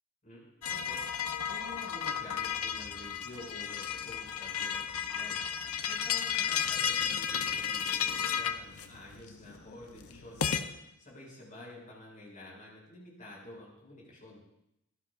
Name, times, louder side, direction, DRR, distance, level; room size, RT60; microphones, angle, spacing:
voice 1, 0.2-5.4 5.9-14.4, left 1 dB, 40° left, -3 dB, 7.3 m, -50 dB
sound 1, 0.6-10.6, left 8 dB, 85° left, 0.8 m, -33 dB
23.0 x 16.0 x 2.6 m, 0.83 s
head